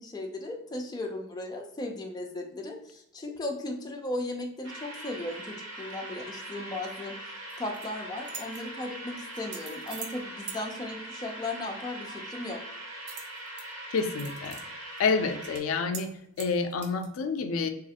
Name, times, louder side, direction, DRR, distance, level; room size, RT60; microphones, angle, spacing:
voice 1, 0.0-7.1 7.6-12.6, left 2 dB, 20° left, 1 dB, 0.4 m, -36 dB
sound 1, 4.6-15.6, right 1 dB, 80° right, 0.9 m, -42 dB
sound 2, 7.5-7.9 8.2-8.6 9.3-10.2 10.5-10.6 13.1-13.6 14.0-14.6 15.0-15.1 15.4-15.6 15.9-16.1 16.4-17.1, right 6 dB, 55° right, 0.5 m, -42 dB
voice 2, 13.9-14.6 15.0-16.1 16.4-17.7, left 4 dB, 85° left, 7 dB, 0.4 m, -28 dB
3.1 x 2.4 x 2.8 m, 0.78 s
head